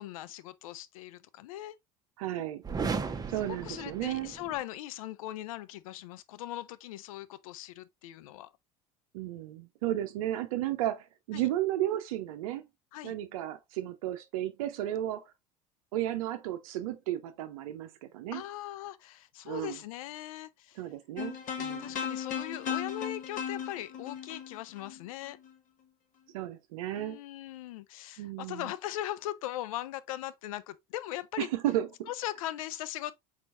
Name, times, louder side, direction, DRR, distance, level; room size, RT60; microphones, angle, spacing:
voice 1, 0.0-1.8 3.3-8.5 11.3-11.5 12.9-13.1 18.3-20.8 21.8-25.4 26.9-31.5 32.1-33.1, left 14 dB, 75° left, 0.5 m, -39 dB
voice 2, 2.2-2.6 3.3-4.3 9.1-12.6 13.0-15.3 15.9-18.4 19.4-19.8 20.8-21.9 26.3-27.2 28.2-28.7 31.4-32.1, right 13 dB, 70° right, 0.6 m, -33 dB
sound 1, 2.6-4.6, right 5 dB, 20° right, 0.8 m, -35 dB
sound 2, 21.2-25.5, left 8 dB, 50° left, 1.3 m, -36 dB
4.5 x 4.1 x 2.5 m
hypercardioid pair, 75°, 18 cm